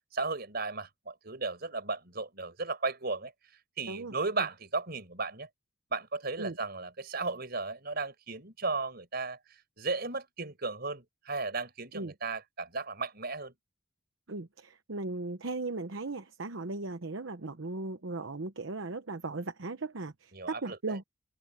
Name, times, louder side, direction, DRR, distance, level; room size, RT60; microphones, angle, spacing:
voice 1, 0.1-3.3 3.8-5.5 5.9-13.5 20.3-21.0, right 3 dB, 50° right, 5.2 m, -35 dB
voice 2, 14.3-21.0, right 3 dB, 70° right, 0.9 m, -37 dB
open air
head